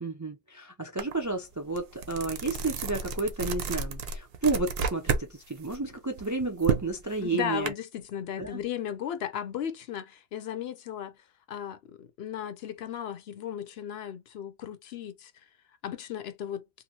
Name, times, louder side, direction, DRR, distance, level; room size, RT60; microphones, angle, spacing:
voice 1, 0.0-7.7 8.4-8.6, right 3 dB, 25° right, 0.4 m, -31 dB
sound 1, 1.0-1.1 1.5-5.3 5.6-7.7, right 5 dB, 65° right, 0.8 m, -31 dB
voice 2, 7.2-11.2 11.5-15.3 15.8-16.6, left 9 dB, 70° left, 0.8 m, -36 dB
2.8 x 2.5 x 2.8 m
omnidirectional pair, 1.2 m